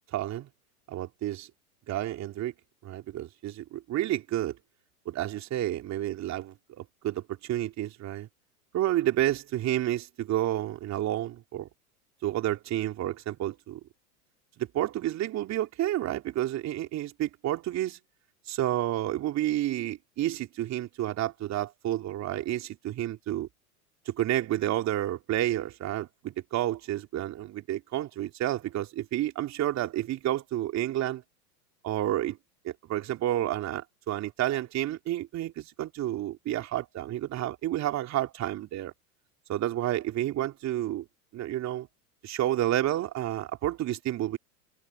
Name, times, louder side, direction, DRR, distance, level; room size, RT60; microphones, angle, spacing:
voice 1, 0.1-0.5 0.9-1.5 1.9-2.5 2.8-4.6 5.0-8.3 8.7-11.7 12.2-13.8 14.6-18.0 18.5-23.5 24.0-31.2 31.8-32.4 32.6-38.9 39.5-41.0 41.3-41.9 42.2-44.4, right 13 dB, 35° right, 3.3 m, -30 dB
hypercardioid pair, 100°, 46 cm